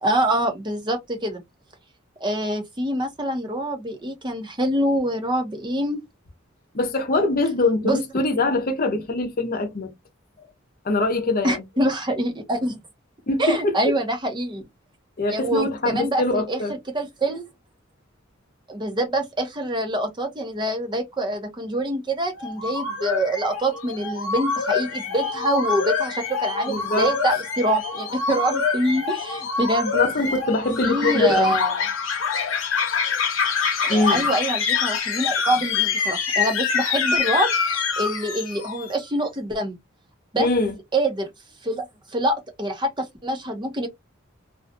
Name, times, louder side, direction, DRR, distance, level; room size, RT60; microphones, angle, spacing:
voice 1, 0.0-1.4 2.2-6.0 7.8-8.3 11.4-12.8 13.4-14.6 15.3-16.6 16.9-17.5 18.7-29.9 30.8-31.7 33.8-39.8 40.3-40.5 40.9-41.3 41.6-41.9 42.1-43.9, right 1 dB, 25° right, 0.8 m, -25 dB
voice 2, 6.7-9.9 10.8-11.6 13.3-13.7 15.2-16.7 26.7-27.1 29.9-31.6 33.9-34.3 40.4-40.7, left 2 dB, 45° left, 0.8 m, -23 dB
sound 1, 22.3-38.9, left 5 dB, 80° left, 0.9 m, -25 dB
2.6 x 2.3 x 2.5 m
head